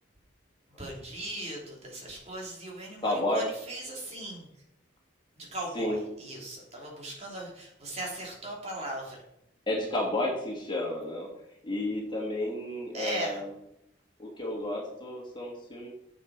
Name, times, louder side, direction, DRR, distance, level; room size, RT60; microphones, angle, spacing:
voice 1, 0.8-4.5 5.4-9.2 12.9-13.4, right 1 dB, 35° right, -1 dB, 3.0 m, -38 dB
voice 2, 3.0-3.4 5.7-6.0 9.7-11.3 11.6-13.5 14.2-15.9, left 1 dB, 25° left, -2 dB, 2.6 m, -31 dB
11.0 x 7.9 x 4.9 m, 0.78 s
head